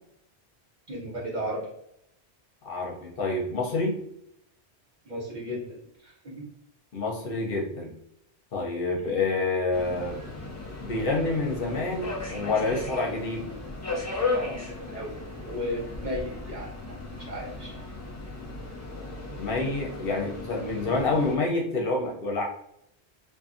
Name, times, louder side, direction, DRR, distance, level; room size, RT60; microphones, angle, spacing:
voice 1, 0.9-1.7 5.0-5.8 6.0-6.5 8.9-9.2 13.0-13.2 14.3-15.1 15.4-17.7, equal, 45° right, -5 dB, 1.0 m, -35 dB
voice 2, 2.6-4.0 6.9-7.9 8.5-10.3 10.8-13.5 19.4-22.4, left 3 dB, 60° left, -1 dB, 0.8 m, -28 dB
Subway metro underground, 9.7-21.3, left 3 dB, 15° left, 0.9 m, -36 dB
2.5 x 2.5 x 2.4 m, 0.75 s
omnidirectional pair, 1.1 m